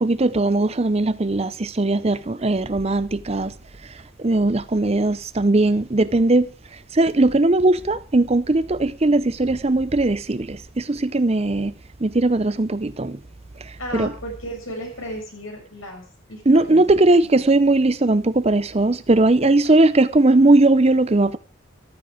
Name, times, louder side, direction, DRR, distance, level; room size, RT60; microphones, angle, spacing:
voice 1, 0.0-3.5 4.2-6.5 7.0-11.7 12.0-13.2 13.9-14.1 16.5-21.4, right 2 dB, 30° right, 0.6 m, -18 dB
voice 2, 13.8-16.8 17.2-17.5, equal, 80° left, 6.8 m, -35 dB
14.0 x 13.0 x 5.0 m
head